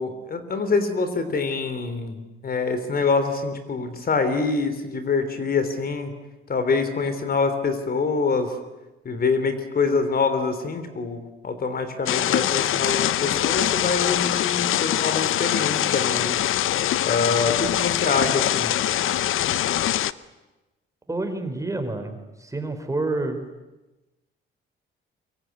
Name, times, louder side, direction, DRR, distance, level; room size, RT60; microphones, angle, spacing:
voice 1, 0.0-6.1 6.5-8.6 9.0-16.3 17.0-18.7, left 4 dB, 45° left, 9 dB, 3.4 m, -25 dB
sound 1, 12.1-20.1, left 12 dB, 75° left, 0.8 m, -23 dB
voice 2, 21.1-23.5, right 2 dB, 15° right, 7 dB, 3.8 m, -29 dB
23.5 x 23.0 x 9.6 m, 1.1 s
cardioid pair, 100°, 21 cm